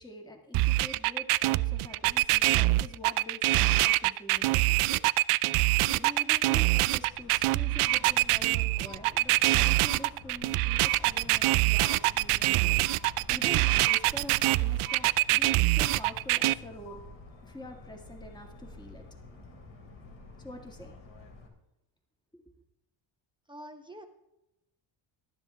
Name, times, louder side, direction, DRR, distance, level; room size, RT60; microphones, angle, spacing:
voice 1, 0.0-5.0 5.9-12.8 13.3-17.0 17.4-19.0 20.4-21.0 22.3-22.4, left 1 dB, 10° left, 2 dB, 1.9 m, -45 dB
sound 1, 0.5-16.5, right 18 dB, 90° right, 0.6 m, -24 dB
Motor vehicle (road) / Siren, 6.9-21.5, left 2 dB, 70° left, 3.6 m, -50 dB
sound 2, 7.9-8.6 8.9-9.6 9.9-10.6 10.9-11.6 11.9-12.6 12.9-13.6 13.9-14.6 14.9-15.6 15.9-16.6 16.9-17.6, left 10 dB, 50° left, 6.5 m, -52 dB
voice 2, 23.5-24.1, right 1 dB, 10° right, 5 dB, 1.0 m, -45 dB
23.0 x 12.0 x 3.5 m, 0.88 s
cardioid pair, 150°, 48 cm